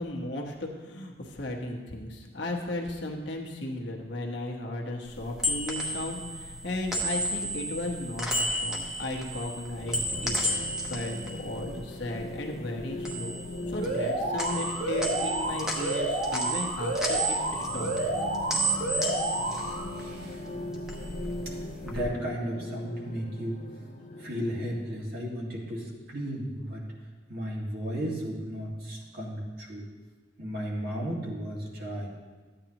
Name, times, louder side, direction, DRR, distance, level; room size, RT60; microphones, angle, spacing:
voice 1, 0.0-13.4 13.7-17.9, left 1 dB, 65° left, 0 dB, 1.2 m, -35 dB
sound 1, 5.1-12.4 12.7-14.1 14.4-20.4 20.7-22.0, right 1 dB, 5° right, 1.0 m, -33 dB
sound 2, 9.8-25.0, left 1 dB, 40° left, 0.7 m, -40 dB
Alarm, 13.8-19.8, right 1 dB, 75° right, 2.7 m, -30 dB
voice 2, 19.4-20.6 21.5-23.6 24.2-26.9 27.3-29.9 30.4-32.1, equal, 50° right, -3 dB, 1.9 m, -35 dB
13.5 x 8.9 x 3.0 m, 1.4 s
head